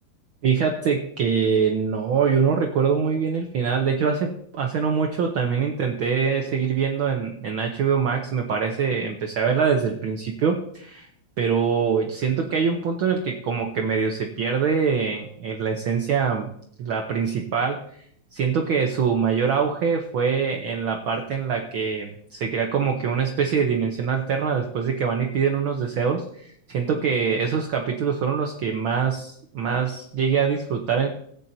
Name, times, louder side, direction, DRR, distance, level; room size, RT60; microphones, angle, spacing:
voice 1, 0.4-11.1 11.4-16.5 16.8-17.8 18.3-31.1, right 6 dB, 85° right, 3 dB, 1.1 m, -24 dB
17.0 x 9.1 x 2.7 m, 0.68 s
omnidirectional pair, 3.4 m